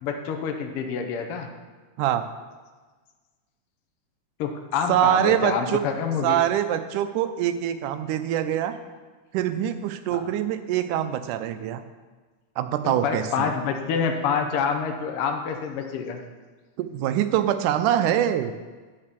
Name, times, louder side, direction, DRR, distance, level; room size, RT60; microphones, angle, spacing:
voice 1, 0.0-1.5 4.4-6.4 10.1-10.2 12.8-16.2, left 6 dB, 75° left, 4 dB, 1.3 m, -27 dB
voice 2, 4.9-5.8 6.2-8.7 9.3-11.8 12.6-13.5 16.8-18.5, right 11 dB, 85° right, 10 dB, 2.1 m, -24 dB
8.7 x 5.6 x 6.7 m, 1.4 s
omnidirectional pair, 3.5 m